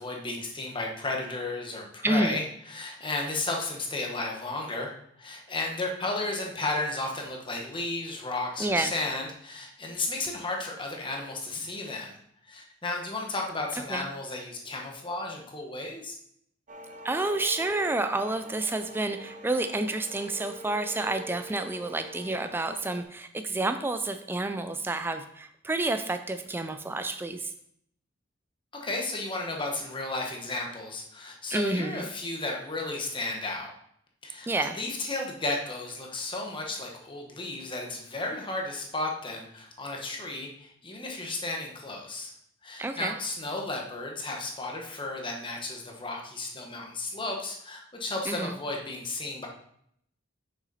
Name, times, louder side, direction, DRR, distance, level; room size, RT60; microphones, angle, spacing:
voice 1, 0.0-4.9 5.2-12.2 12.4-16.2 28.7-33.7 34.2-42.3 42.6-49.5, left 2 dB, 25° left, 1 dB, 1.2 m, -33 dB
voice 2, 2.0-2.4 8.6-8.9 13.9-14.0 17.0-27.5 31.5-32.1 34.5-34.8 42.8-43.1 48.3-48.6, right 2 dB, 10° right, 8 dB, 0.3 m, -29 dB
sound 1, 16.7-23.0, equal, 40° right, 0.7 m, -45 dB
6.7 x 5.9 x 4.1 m, 0.69 s
head